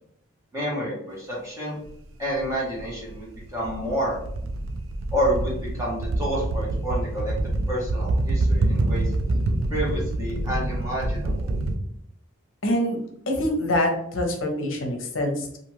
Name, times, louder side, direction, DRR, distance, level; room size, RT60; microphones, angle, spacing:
voice 1, 0.5-1.8 2.2-4.1 5.1-9.0 9.7-11.5, equal, 15° right, -5 dB, 1.0 m, -29 dB
sound 1, 1.9-2.0 2.4-11.8, right 2 dB, 70° right, 0.4 m, -26 dB
voice 2, 12.6-13.0 13.3-15.6, left 1 dB, 65° left, 3 dB, 0.7 m, -25 dB
2.5 x 2.4 x 3.0 m, 0.71 s
head